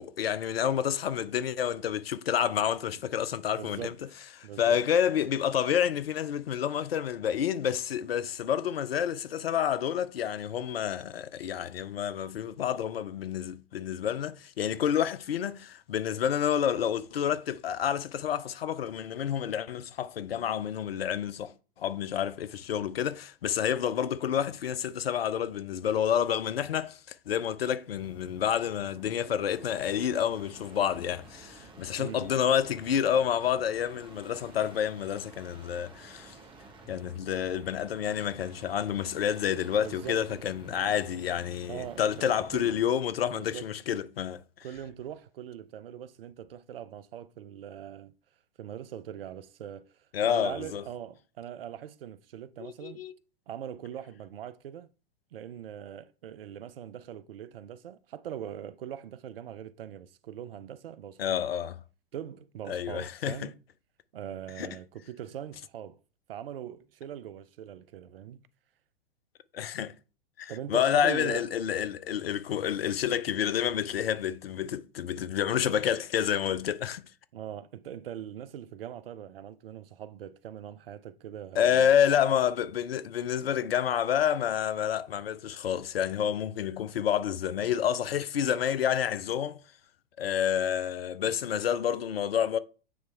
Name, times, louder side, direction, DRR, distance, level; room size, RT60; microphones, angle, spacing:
voice 1, 0.0-3.9 4.4-21.5 21.8-36.3 36.9-44.4 50.1-50.8 52.8-53.1 61.2-61.8 62.7-63.5 64.6-64.7 69.5-69.9 70.4-77.0 81.6-89.6 90.2-92.6, left 9 dB, 70° left, 0.6 m, -29 dB
voice 2, 3.6-3.9 4.4-4.8 31.9-32.3 39.8-40.2 41.7-42.8 43.3-43.7 44.6-48.1 48.6-53.0 53.5-54.9 55.3-61.4 62.1-63.6 64.1-66.0 66.3-68.4 70.5-71.5 77.3-81.9, right 10 dB, 65° right, 0.5 m, -41 dB
sound 1, 27.8-42.9 44.7-45.1, right 3 dB, 15° right, 1.0 m, -52 dB
9.3 x 3.1 x 3.4 m
figure-of-eight pair, 100°, 31 cm